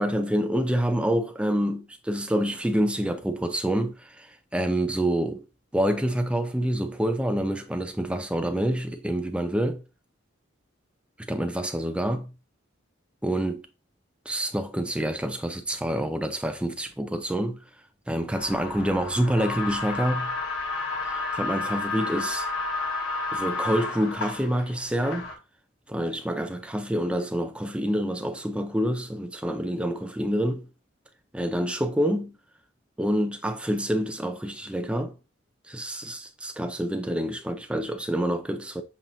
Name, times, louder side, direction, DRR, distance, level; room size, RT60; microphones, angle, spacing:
voice 1, 0.0-5.4 5.7-9.8 11.2-12.3 13.2-13.6 14.3-17.6 18.1-20.3 21.0-22.5 23.3-25.3 25.9-30.7 31.3-32.4 33.0-35.1 35.7-38.8, equal, 5° right, 0.4 m, -27 dB
sound 1, 18.3-25.4, left 3 dB, 75° left, 1.1 m, -31 dB
7.3 x 2.5 x 2.7 m
head